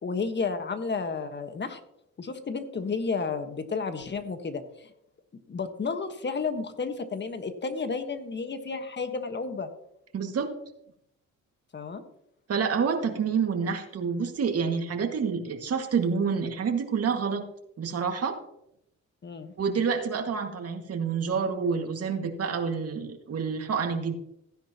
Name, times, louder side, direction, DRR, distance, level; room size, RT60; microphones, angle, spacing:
voice 1, 0.0-1.8 2.2-4.9 5.5-9.7 11.7-12.0 19.2-19.5, left 4 dB, 35° left, 8 dB, 1.4 m, -32 dB
voice 2, 10.1-10.5 12.5-17.4 17.8-18.4 19.6-24.1, right 6 dB, 55° right, 4 dB, 2.0 m, -28 dB
15.5 x 10.0 x 2.9 m, 0.78 s
cardioid pair, 90°, 30 cm